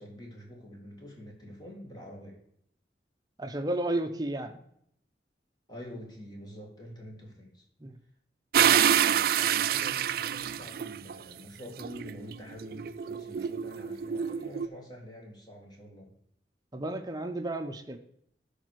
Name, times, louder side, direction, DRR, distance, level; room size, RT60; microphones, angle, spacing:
voice 1, 0.0-2.4 5.7-7.6 8.5-16.1, equal, 25° left, 0 dB, 2.4 m, -46 dB
voice 2, 3.4-4.5 7.8-8.0 16.7-18.0, right 1 dB, 20° right, 6 dB, 0.8 m, -32 dB
sound 1, 8.5-11.1 11.8-14.7, right 9 dB, 55° right, 0.3 m, -27 dB
12.0 x 5.2 x 4.7 m, 0.70 s
head